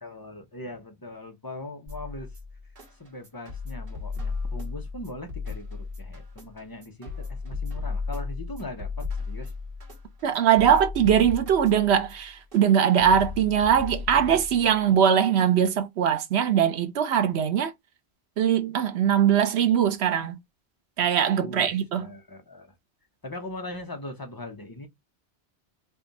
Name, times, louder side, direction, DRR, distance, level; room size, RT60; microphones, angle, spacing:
voice 1, 0.0-2.4 3.0-9.5 21.4-22.7 23.2-24.9, left 2 dB, 25° left, 0.7 m, -40 dB
sound 1, 1.9-14.8, left 4 dB, 60° right, 1.4 m, -35 dB
voice 2, 10.2-17.7 18.4-20.4 21.0-22.1, right 9 dB, 85° right, 1.0 m, -21 dB
3.5 x 2.4 x 3.9 m
omnidirectional pair, 1.1 m